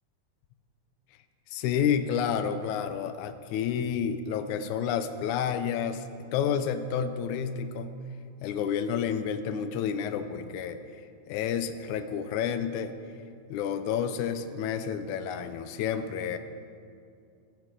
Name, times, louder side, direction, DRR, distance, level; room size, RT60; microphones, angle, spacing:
voice 1, 1.5-6.0 6.3-7.9 8.4-10.8 11.3-12.9 13.5-16.4, left 8 dB, 85° left, 9 dB, 1.7 m, -30 dB
25.0 x 11.5 x 3.8 m, 2.3 s
omnidirectional pair, 4.3 m